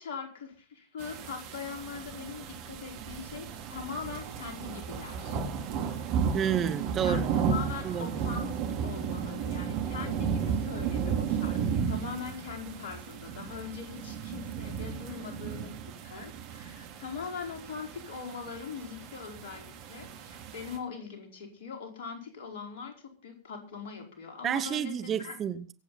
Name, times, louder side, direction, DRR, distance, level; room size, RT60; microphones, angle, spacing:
voice 1, 0.0-5.4 5.8-6.2 7.0-25.4, left 6 dB, 50° left, 4.7 m, -41 dB
sound 1, 1.0-20.8, right 6 dB, 45° right, 3.1 m, -34 dB
voice 2, 6.3-7.3 7.8-8.1 24.4-25.7, right 9 dB, 25° right, 1.1 m, -30 dB
24.5 x 8.7 x 4.2 m
figure-of-eight pair, 90°, 0 cm